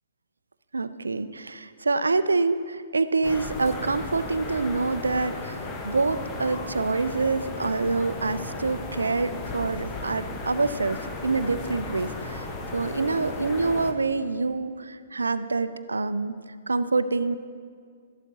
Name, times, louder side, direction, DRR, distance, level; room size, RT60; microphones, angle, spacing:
voice 1, 0.7-5.6 5.8-12.5 12.7-17.4, right 3 dB, 70° right, 13 dB, 0.5 m, -26 dB
sound 1, 3.2-13.9, left 3 dB, 20° left, 1.1 m, -35 dB
13.0 x 11.5 x 4.0 m, 2.1 s
figure-of-eight pair, 120°, 0 cm